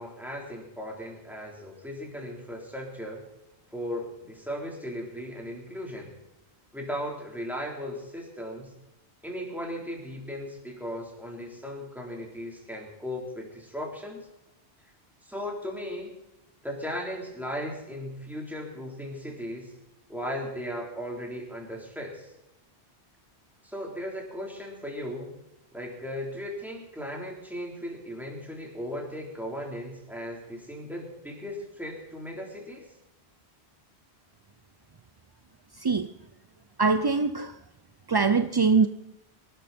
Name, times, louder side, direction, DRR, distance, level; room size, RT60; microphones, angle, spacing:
voice 1, 0.0-3.2 3.7-6.1 6.7-8.7 9.2-14.3 15.2-16.1 16.6-19.7 20.1-22.3 23.6-25.3 25.7-32.9, equal, ahead, 3.9 m, -37 dB
voice 2, 36.8-37.5 38.1-38.9, right 4 dB, 35° right, 0.4 m, -22 dB
25.0 x 12.0 x 4.4 m
omnidirectional pair, 1.1 m